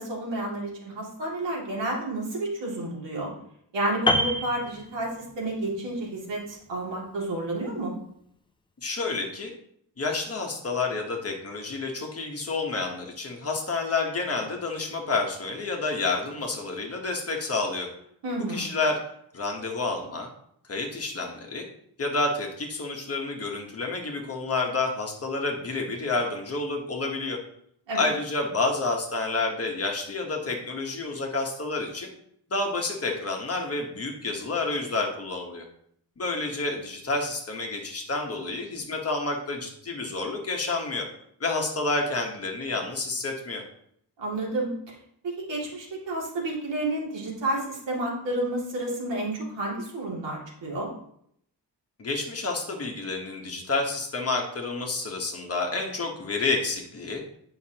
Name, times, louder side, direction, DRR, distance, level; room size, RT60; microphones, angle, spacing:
voice 1, 0.0-3.3 3.7-7.9 18.2-18.7 27.9-28.0 44.2-44.9 45.5-50.9, right 1 dB, 85° right, -3 dB, 2.5 m, -30 dB
Piano, 4.1-5.5 5.8-6.0, left 1 dB, 15° left, 0.4 m, -26 dB
voice 2, 8.8-9.5 10.0-17.9 18.4-19.0 19.3-20.3 20.7-21.6 22.0-27.4 27.9-32.1 32.5-35.6 36.2-41.1 41.4-43.6 52.0-57.2, left 3 dB, 35° left, 1 dB, 1.2 m, -29 dB
9.3 x 5.8 x 2.9 m, 0.69 s
wide cardioid pair, 170°, 42 cm